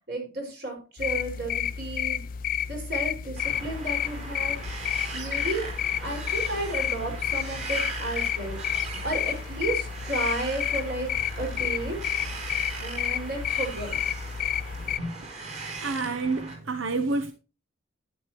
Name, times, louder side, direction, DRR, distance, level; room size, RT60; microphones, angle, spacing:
voice 1, 0.1-2.2 2.7-4.6 5.1-5.7 6.0-11.1 11.4-12.0 12.8-14.0 15.0-15.2, right 2 dB, 55° right, 5.6 m, -33 dB
sound 1, 1.0-15.0, left 10 dB, 45° left, 0.4 m, -30 dB
Wind, 3.4-16.5, right 3 dB, 35° right, 4.7 m, -39 dB
voice 2, 15.5-17.3, right 3 dB, 90° right, 0.8 m, -29 dB
11.5 x 10.5 x 3.0 m
head